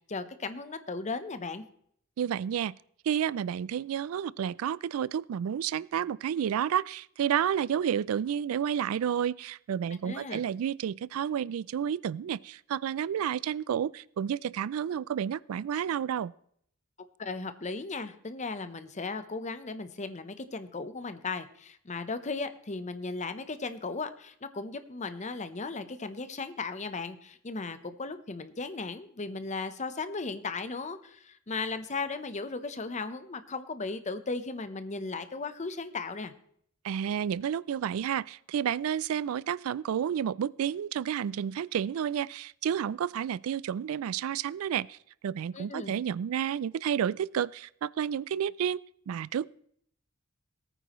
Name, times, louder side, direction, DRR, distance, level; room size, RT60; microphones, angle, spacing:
voice 1, 0.0-1.7 10.0-10.4 17.2-36.3 45.5-45.9, left 3 dB, 35° left, 11 dB, 0.8 m, -36 dB
voice 2, 2.2-2.7 3.0-16.3 36.8-45.0 45.2-49.5, right 8 dB, 85° right, 22 dB, 0.3 m, -30 dB
19.0 x 9.1 x 3.0 m, 0.66 s
head